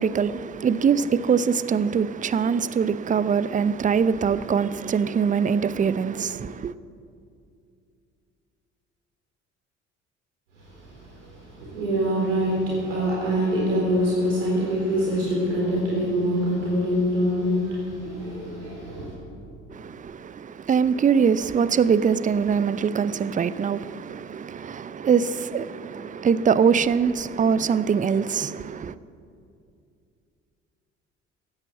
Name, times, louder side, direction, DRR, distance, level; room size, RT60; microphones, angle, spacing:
voice 1, 0.0-6.7 19.7-28.9, right 6 dB, 20° right, 0.6 m, -23 dB
voice 2, 10.8-19.1, equal, 80° right, 4.0 m, -25 dB
16.0 x 10.5 x 8.4 m
figure-of-eight pair, 55°, 36 cm